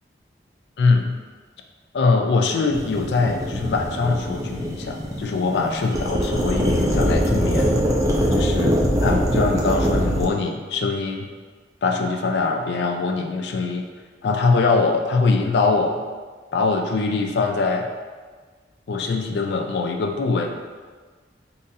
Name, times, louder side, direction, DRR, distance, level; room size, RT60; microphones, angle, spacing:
voice 1, 0.8-1.2 1.9-7.8 8.3-11.3 11.8-13.8 14.2-16.0 16.5-17.9 18.9-20.5, left 4 dB, 65° left, 3 dB, 0.3 m, -22 dB
sound 1, 2.7-10.3, equal, 20° right, 0.4 m, -22 dB
3.9 x 2.7 x 2.5 m, 1.4 s
head